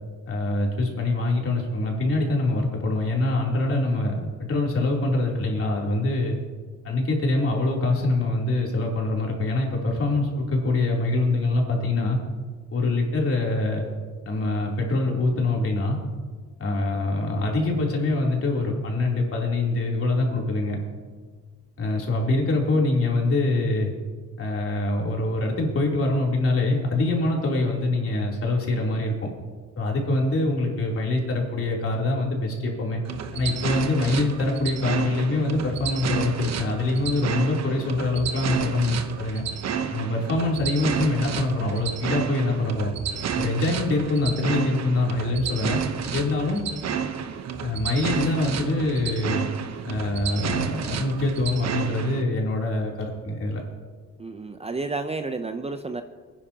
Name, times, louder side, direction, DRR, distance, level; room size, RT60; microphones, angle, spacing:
voice 1, 0.3-6.4 6.8-12.2 12.7-13.8 14.2-16.0 16.6-20.8 21.8-23.9 24.4-29.1 29.8-33.0 33.3-39.4 39.9-42.9 43.4-45.8 46.1-46.6 47.6-49.5 49.8-53.6, left 2 dB, 45° left, -2 dB, 3.3 m, -24 dB
sound 1, 33.1-52.2, right 7 dB, 60° right, 1.0 m, -31 dB
voice 2, 54.2-56.0, right 3 dB, 20° right, 8 dB, 0.6 m, -31 dB
21.5 x 10.0 x 2.9 m, 1.5 s
cardioid pair, 90°, 30 cm